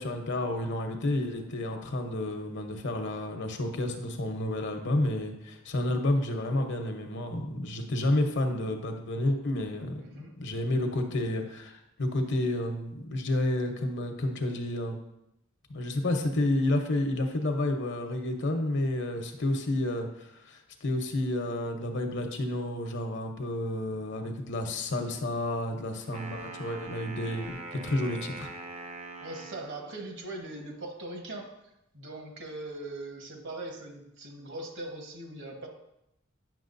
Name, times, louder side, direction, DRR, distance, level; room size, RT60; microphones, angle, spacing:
voice 1, 0.0-10.0 10.4-15.0 15.7-28.5, left 1 dB, 60° left, 5 dB, 0.9 m, -30 dB
voice 2, 10.0-10.3 29.2-31.5 31.9-35.7, right 2 dB, 60° right, 2 dB, 1.3 m, -40 dB
Wind instrument woodwind instrument, 26.0-30.0, right 3 dB, 30° right, 0.6 m, -42 dB
9.0 x 6.0 x 2.6 m, 0.84 s
head